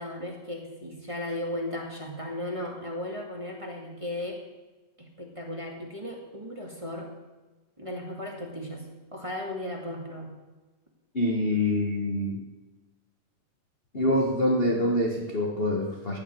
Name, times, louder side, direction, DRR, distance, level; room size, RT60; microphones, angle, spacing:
voice 1, 0.0-4.4 5.0-7.1 7.8-10.3, left 1 dB, 10° right, -1 dB, 1.8 m, -36 dB
voice 2, 11.1-12.4 13.9-16.2, left 1 dB, 40° left, 0 dB, 0.8 m, -25 dB
16.5 x 6.0 x 9.2 m, 1.2 s
omnidirectional pair, 3.3 m